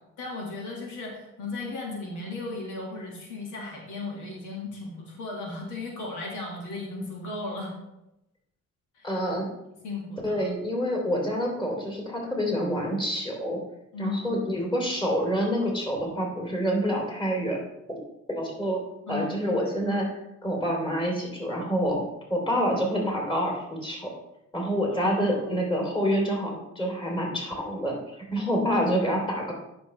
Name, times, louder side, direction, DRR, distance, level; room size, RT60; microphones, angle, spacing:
voice 1, 0.2-7.7 8.9-9.2 9.8-10.5 13.9-14.3 19.1-19.5 24.9-25.6, left 3 dB, 80° left, -1 dB, 1.9 m, -36 dB
voice 2, 9.0-9.4 10.2-13.6 14.0-17.6 17.9-18.0 18.3-18.8 19.1-20.1 20.4-22.0 22.3-24.1 24.5-27.9 28.3-29.5, equal, 15° left, -2 dB, 3.1 m, -27 dB
9.6 x 6.0 x 3.2 m, 0.87 s
cardioid pair, 90°, 30 cm